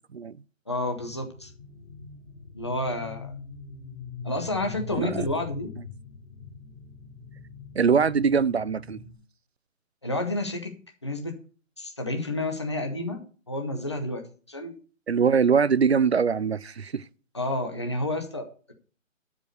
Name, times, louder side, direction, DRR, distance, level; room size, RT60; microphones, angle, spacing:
voice 1, 0.7-1.5 2.5-3.3 4.2-5.7 10.0-10.7 11.0-11.4 11.8-13.2 13.5-14.2 14.5-14.7 17.3-18.7, left 1 dB, 20° left, 0.9 m, -30 dB
sound 1, 1.0-9.1, left 5 dB, 55° left, 3.6 m, -42 dB
voice 2, 7.8-9.0 15.1-17.0, right 6 dB, 55° right, 0.5 m, -22 dB
11.5 x 5.3 x 6.5 m
hypercardioid pair, 180°, 40 cm